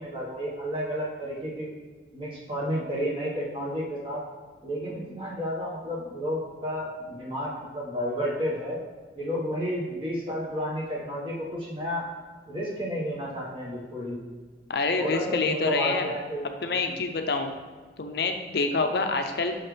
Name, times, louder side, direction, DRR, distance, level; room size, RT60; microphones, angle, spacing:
voice 1, 0.0-1.7 2.1-4.2 4.6-8.8 9.2-12.1 12.5-14.2 15.0-16.9, equal, 30° right, -4 dB, 1.4 m, -31 dB
voice 2, 14.7-16.1 16.6-17.5 18.0-19.6, left 3 dB, 60° left, 5 dB, 0.5 m, -27 dB
6.4 x 5.8 x 3.3 m, 1.4 s
head